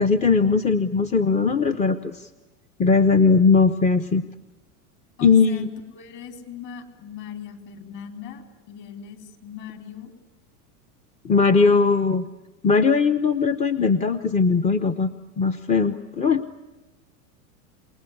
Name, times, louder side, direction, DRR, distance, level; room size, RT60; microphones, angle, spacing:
voice 1, 0.0-2.3 2.8-4.2 5.2-5.7 11.2-12.2 12.6-15.1 15.4-16.4, left 4 dB, 15° left, 9 dB, 0.8 m, -19 dB
voice 2, 5.2-5.6 5.9-10.1 11.6-11.9, left 8 dB, 40° left, 6 dB, 4.5 m, -39 dB
28.5 x 20.0 x 9.9 m, 1.1 s
supercardioid pair, 130°, 44 cm